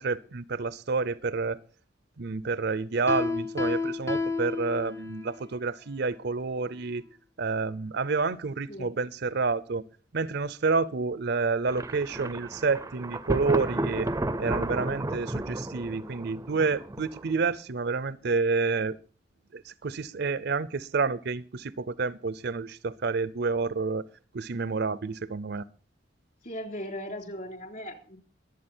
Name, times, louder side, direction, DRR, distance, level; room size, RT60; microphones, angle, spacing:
voice 1, 0.0-1.6 2.2-7.0 7.4-9.8 10.1-14.1 14.4-19.0 19.5-24.1 24.3-25.7, right 4 dB, 60° right, 0.6 m, -29 dB
Piano, 3.1-5.4, left 3 dB, 15° left, 0.7 m, -30 dB
Thunder, 11.7-17.5, right 1 dB, 15° right, 0.6 m, -32 dB
voice 2, 26.4-28.2, equal, 45° left, 3.8 m, -38 dB
22.5 x 8.4 x 4.4 m
head